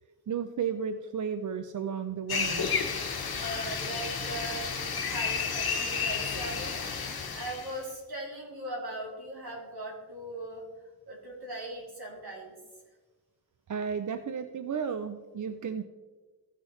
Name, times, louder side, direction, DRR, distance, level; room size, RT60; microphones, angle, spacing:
voice 1, 0.3-2.7 13.7-15.8, right 7 dB, 55° right, 9 dB, 0.5 m, -33 dB
sound 1, 2.3-7.8, left 5 dB, 70° left, 1.0 m, -32 dB
voice 2, 3.3-4.6 5.0-6.8 7.3-10.6 11.1-12.5, right 1 dB, 75° right, -3 dB, 3.1 m, -39 dB
15.5 x 6.3 x 3.2 m, 1.3 s
wide cardioid pair, 90°, 38 cm